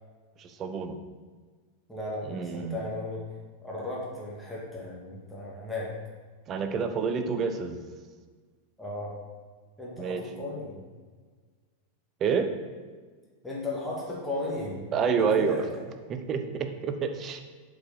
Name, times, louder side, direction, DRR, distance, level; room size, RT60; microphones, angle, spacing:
voice 1, 0.4-1.0 2.3-2.8 6.5-7.8 10.0-10.2 12.2-12.5 14.9-15.6 16.1-17.4, right 6 dB, 30° right, 7 dB, 0.8 m, -28 dB
voice 2, 1.9-3.2 3.6-5.9 8.8-9.1 9.8-10.8 13.4-15.8, left 2 dB, 5° left, -6 dB, 2.0 m, -35 dB
7.6 x 5.0 x 5.5 m, 1.5 s
figure-of-eight pair, 90°, 0 cm